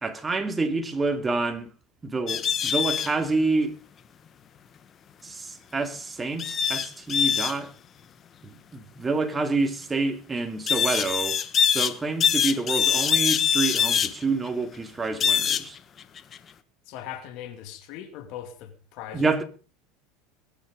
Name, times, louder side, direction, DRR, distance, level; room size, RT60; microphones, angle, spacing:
voice 1, 0.0-1.7 2.0-3.7 5.2-7.7 8.4-11.4 11.7-15.8 19.1-19.4, right 3 dB, 20° right, 2.7 m, -28 dB
sound 1, 2.3-3.1 6.4-7.6 10.7-11.9 12.2-14.1 15.2-15.7 16.0-16.4, left 8 dB, 35° left, 1.4 m, -23 dB
voice 2, 16.9-19.2, left 10 dB, 60° left, 2.5 m, -39 dB
21.0 x 10.5 x 5.3 m
hypercardioid pair, 95°, 0 cm